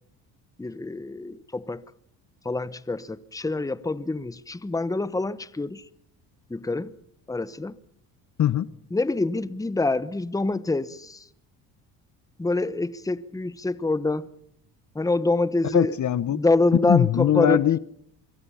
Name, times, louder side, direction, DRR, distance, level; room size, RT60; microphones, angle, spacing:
voice 1, 0.6-1.8 2.4-5.8 6.5-6.9 7.3-7.7 8.9-11.3 12.4-14.3 14.9-15.9 16.3-17.6, left 2 dB, 10° left, 1.0 m, -26 dB
voice 2, 15.7-16.4 16.8-17.8, left 10 dB, 45° left, 0.9 m, -21 dB
25.0 x 23.0 x 5.7 m
supercardioid pair, 75°, 42 cm